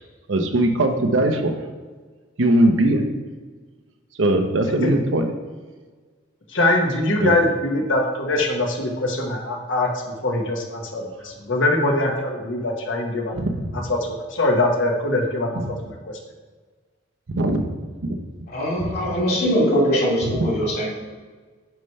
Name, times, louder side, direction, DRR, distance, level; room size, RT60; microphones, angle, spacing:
voice 1, 0.3-1.5 2.4-3.0 4.2-5.3 7.2-7.3 13.3-13.7 17.3-17.7 18.0-18.2 18.8-19.2 20.3-20.5, right 1 dB, 85° right, 5 dB, 0.8 m, -20 dB
voice 2, 6.5-9.9 10.2-13.4 13.7-15.9, left 2 dB, 80° left, 1 dB, 1.2 m, -22 dB
voice 3, 18.5-20.9, equal, 55° left, -4 dB, 2.4 m, -21 dB
9.0 x 3.3 x 5.4 m, 1.4 s
head